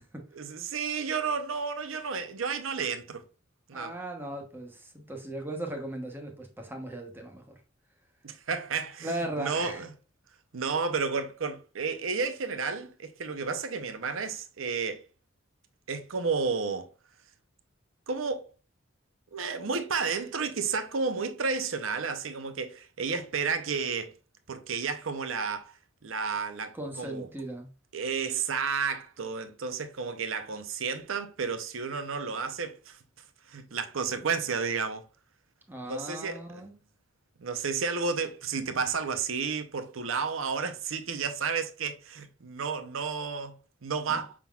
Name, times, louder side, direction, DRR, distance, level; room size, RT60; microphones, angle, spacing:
voice 1, 0.3-3.2 3.7-4.0 8.2-9.9 10.5-15.0 15.9-16.9 18.1-18.5 19.3-24.1 24.5-27.3 27.9-33.0 33.5-35.1 35.8-36.6 37.4-44.3, right 5 dB, 75° right, 0.7 m, -32 dB
voice 2, 3.7-7.6 9.0-9.8 26.7-27.7 35.7-36.7 44.1-44.2, right 1 dB, 10° right, 0.9 m, -37 dB
5.9 x 3.7 x 2.3 m
head